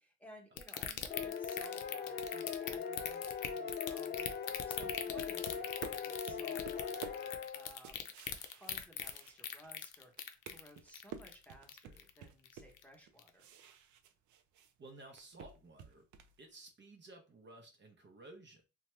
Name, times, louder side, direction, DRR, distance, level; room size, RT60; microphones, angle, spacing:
voice 1, 0.0-13.4, equal, 5° left, 1 dB, 0.9 m, -58 dB
sound 1, 0.6-12.2 12.5-12.8 13.2-13.3, left 10 dB, 85° left, 0.5 m, -41 dB
sound 2, 1.1-7.7, left 6 dB, 35° left, 0.5 m, -41 dB
sound 3, 4.5-9.8 10.1-14.7 15.0-16.4, right 7 dB, 75° right, 0.5 m, -52 dB
voice 2, 14.8-16.0 16.4-18.6, right 2 dB, 35° right, 3 dB, 0.6 m, -55 dB
2.8 x 2.2 x 3.1 m, 0.31 s
cardioid pair, 90°, 30 cm